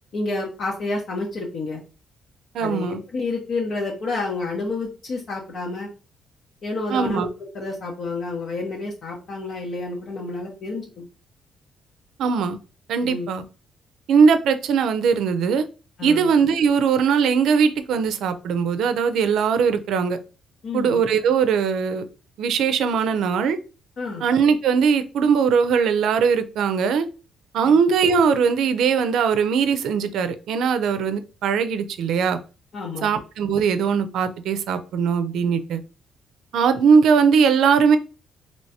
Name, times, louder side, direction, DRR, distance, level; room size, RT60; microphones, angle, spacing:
voice 1, 0.1-1.8 2.6-5.9 6.6-7.3 7.5-11.1 13.0-13.3 16.0-16.3 20.6-21.0 24.0-24.3 27.6-27.7 32.7-33.1, left 3 dB, 60° left, -2 dB, 0.8 m, -29 dB
voice 2, 2.5-3.0 6.9-7.3 12.2-12.6 12.9-13.4 14.1-15.7 16.0-20.2 20.7-22.0 22.4-23.6 24.2-27.1 27.5-32.4 33.0-35.8 36.5-38.0, right 6 dB, 80° right, 10 dB, 0.5 m, -20 dB
3.2 x 3.0 x 2.7 m, 0.33 s
cardioid pair, 90°, 0 cm